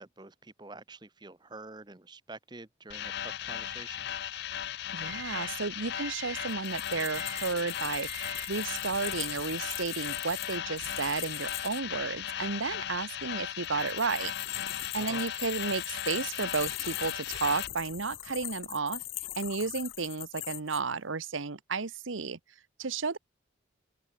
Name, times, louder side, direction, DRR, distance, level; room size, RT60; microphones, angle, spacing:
voice 1, 0.0-4.1 15.0-15.2, right 3 dB, 20° right, 0.9 m, -47 dB
sound 1, 2.9-17.7, left 10 dB, 55° left, 0.4 m, -37 dB
voice 2, 4.9-14.3 14.9-19.0 19.4-22.4 22.8-23.2, right 4 dB, 80° right, 1.0 m, -33 dB
sound 2, 5.0-11.1, right 7 dB, 65° right, 3.6 m, -49 dB
sound 3, 6.5-11.8 13.6-20.8, left 15 dB, 90° left, 1.6 m, -40 dB
open air
head